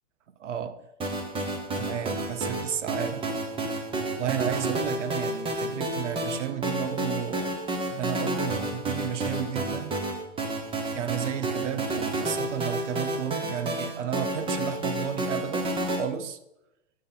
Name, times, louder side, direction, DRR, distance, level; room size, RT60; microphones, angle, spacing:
voice 1, 0.4-0.8 1.8-3.3 4.1-7.6 7.9-9.9 10.9-16.4, right 9 dB, 85° right, 0.9 m, -32 dB
sound 1, 1.0-16.0, right 2 dB, 15° right, 1.0 m, -30 dB
7.6 x 6.4 x 3.9 m
hypercardioid pair, 135°, 35 cm